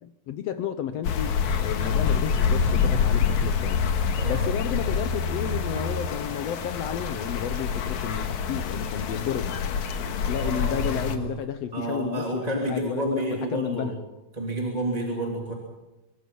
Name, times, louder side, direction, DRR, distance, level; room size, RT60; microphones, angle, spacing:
voice 1, 0.0-3.8 4.3-9.6 10.0-14.0, left 9 dB, 80° left, 9 dB, 1.4 m, -32 dB
sound 1, 1.0-11.2, left 6 dB, 60° left, 2.6 m, -26 dB
voice 2, 10.3-11.3 11.7-13.9 14.3-15.5, right 1 dB, 10° right, -1 dB, 2.5 m, -30 dB
25.5 x 23.5 x 5.5 m, 1.0 s
omnidirectional pair, 4.1 m